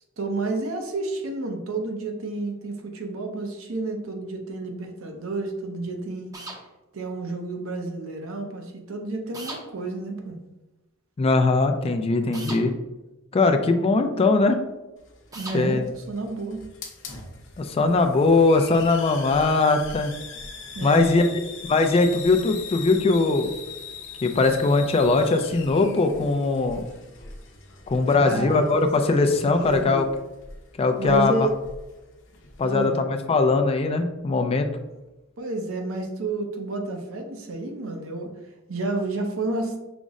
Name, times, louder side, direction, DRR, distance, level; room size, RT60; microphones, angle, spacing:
voice 1, 0.2-6.3 6.9-10.4 15.3-16.6 20.7-21.3 28.1-28.7 29.2-30.0 31.0-31.5 32.6-33.0 35.4-38.3 38.7-39.8, right 2 dB, 70° right, 3 dB, 0.7 m, -30 dB
sound 1, 6.3-6.6 9.3-9.6 12.3-12.6 15.3-15.6, right 2 dB, 15° right, 0.6 m, -36 dB
voice 2, 11.2-12.7 13.3-14.6 15.5-15.8 17.6-20.1 20.8-21.2 21.6-23.5 24.2-26.8 27.9-30.1 30.8-31.5 32.6-34.7, left 3 dB, 30° left, 6 dB, 0.3 m, -20 dB
Hiss, 15.0-32.9, left 4 dB, 60° left, 0.8 m, -42 dB
5.1 x 2.1 x 3.6 m, 1.0 s
head